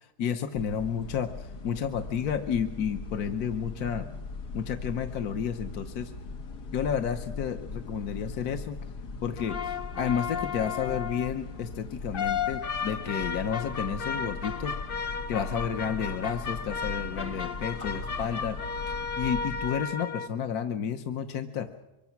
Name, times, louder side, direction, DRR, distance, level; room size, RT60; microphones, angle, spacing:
voice 1, 0.0-4.1 4.5-6.1 6.7-8.8 9.2-14.7 15.3-18.6 18.9-21.7, left 7 dB, 70° left, 6 dB, 1.4 m, -31 dB
sound 1, 0.6-19.7, left 3 dB, 85° left, 1.9 m, -40 dB
sound 2, 9.4-11.4 12.1-20.3, left 6 dB, 45° left, 0.9 m, -34 dB
24.0 x 23.0 x 5.9 m, 1.0 s
omnidirectional pair, 1.7 m